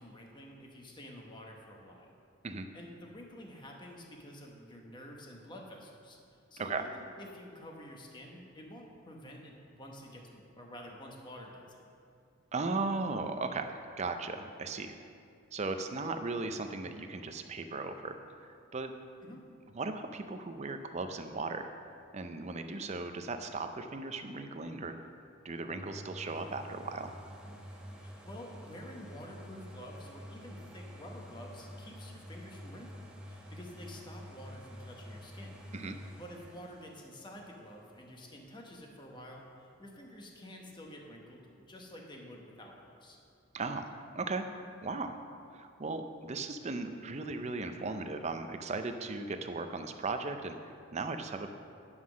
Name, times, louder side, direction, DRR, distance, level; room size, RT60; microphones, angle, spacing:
voice 1, 0.0-2.2 2.7-6.2 6.5-11.8 19.2-19.4 28.0-35.6 36.1-43.2, equal, 20° left, 0 dB, 1.0 m, -49 dB
voice 2, 12.5-15.0 15.5-18.9 19.7-21.7 22.1-24.9 25.4-27.1 35.7-36.0 43.5-43.9 44.1-44.5 44.8-45.1 45.5-51.5, right 3 dB, 30° right, 7 dB, 0.5 m, -37 dB
sound 1, 25.7-39.4 39.9-40.0, equal, 5° right, 0.8 m, -49 dB
9.6 x 5.6 x 6.1 m, 2.4 s
head